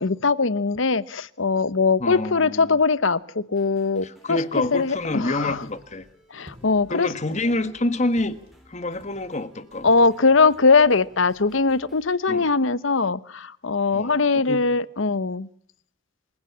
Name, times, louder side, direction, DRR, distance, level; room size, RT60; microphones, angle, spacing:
voice 1, 0.0-4.4 4.7-5.6 6.3-7.1 9.8-15.5, left 4 dB, 70° left, 18 dB, 1.0 m, -21 dB
voice 2, 2.0-2.8 4.0-6.1 6.9-8.4 8.7-9.9 12.3-12.5 13.9-14.7, left 2 dB, 35° left, 12 dB, 1.6 m, -27 dB
sound 1, 3.5-12.1, equal, ahead, 4.7 m, -55 dB
sound 2, 4.5-9.9, equal, 30° right, 6.1 m, -53 dB
26.0 x 16.5 x 8.6 m, 0.67 s
head